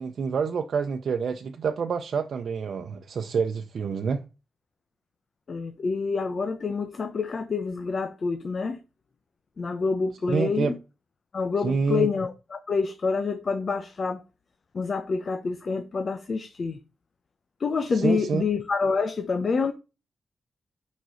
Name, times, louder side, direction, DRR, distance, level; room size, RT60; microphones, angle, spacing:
voice 1, 0.0-4.2 10.3-10.7 11.6-12.1 17.9-18.4, right 6 dB, 65° right, 0.8 m, -27 dB
voice 2, 5.5-8.8 9.6-10.8 11.3-14.2 14.7-16.8 17.6-19.7, left 4 dB, 45° left, 0.9 m, -27 dB
6.5 x 5.4 x 6.4 m
wide cardioid pair, 130°, 0 cm